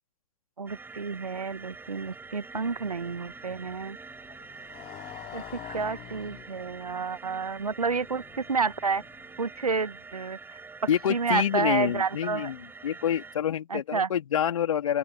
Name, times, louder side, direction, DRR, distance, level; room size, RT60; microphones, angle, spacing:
voice 1, 0.6-4.0 5.3-9.0 9.4-10.6 11.1-12.5 13.7-14.1, right 4 dB, 80° right, 1.5 m, -30 dB
sound 1, 0.7-13.4, right 4 dB, 10° right, 6.2 m, -46 dB
Motorcycle, 1.5-9.7, left 16 dB, 30° left, 3.7 m, -49 dB
voice 2, 10.9-12.6 12.8-15.0, left 9 dB, 60° left, 3.7 m, -27 dB
open air
figure-of-eight pair, 105°, 19 cm